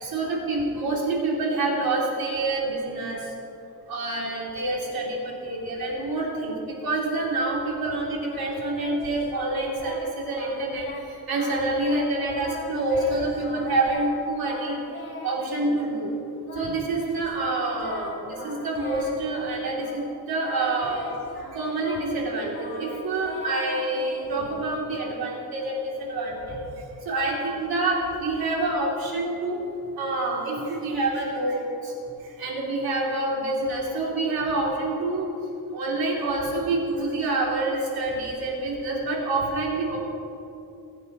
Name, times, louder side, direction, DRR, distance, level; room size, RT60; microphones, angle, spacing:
voice 1, 0.0-3.2 3.9-10.9 11.3-14.8 15.2-16.1 16.5-21.1 21.5-26.6 27.0-29.6 30.0-31.9 32.4-35.3 35.7-40.0, right 2 dB, 70° right, -3 dB, 3.0 m, -27 dB
Singing, 8.2-10.1 10.3-11.1 11.3-12.1 12.3-14.1 14.4-15.9 16.5-20.1 20.4-24.8, left 2 dB, 35° left, 3.2 m, -40 dB
21.0 x 8.5 x 3.0 m, 2.6 s
wide cardioid pair, 120°, 38 cm